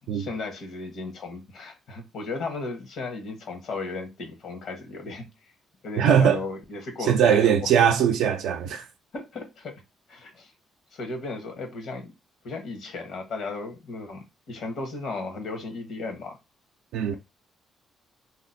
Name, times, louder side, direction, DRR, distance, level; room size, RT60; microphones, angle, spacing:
voice 1, 0.1-5.3 5.8-7.5 9.1-9.8 10.1-10.5 10.9-12.1 12.4-16.4, left 3 dB, 70° left, 1.1 m, -35 dB
voice 2, 6.0-6.4 7.0-8.9 16.9-17.1, right 8 dB, 85° right, 0.4 m, -20 dB
2.9 x 2.0 x 4.0 m
cardioid pair, 90°, 0 cm